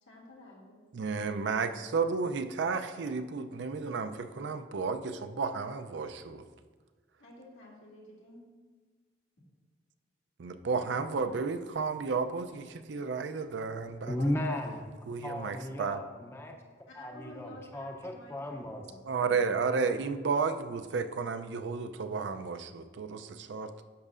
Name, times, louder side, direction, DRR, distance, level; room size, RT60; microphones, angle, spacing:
voice 1, 0.0-0.8 7.2-8.4 14.1-14.3 16.9-19.5, left 2 dB, 85° left, -5 dB, 2.2 m, -51 dB
voice 2, 0.9-6.5 10.4-14.2 15.1-16.0 19.1-23.8, right 5 dB, 70° right, 9 dB, 0.4 m, -32 dB
voice 3, 14.1-14.9 15.2-16.6 17.0-18.9, left 1 dB, 15° left, 3 dB, 0.5 m, -35 dB
10.5 x 6.4 x 2.4 m, 1.4 s
head